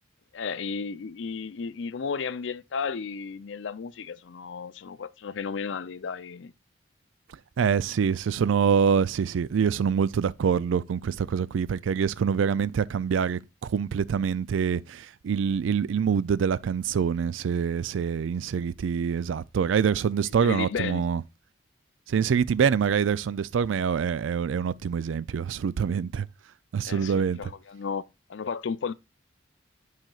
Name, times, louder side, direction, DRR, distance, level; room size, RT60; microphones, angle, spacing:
voice 1, 0.3-6.5 20.4-21.0 26.8-28.0 28.3-28.9, left 5 dB, 70° left, 0.5 m, -33 dB
voice 2, 7.6-21.2 22.1-26.3 26.7-27.4, right 7 dB, 80° right, 0.4 m, -25 dB
9.0 x 5.6 x 2.3 m
head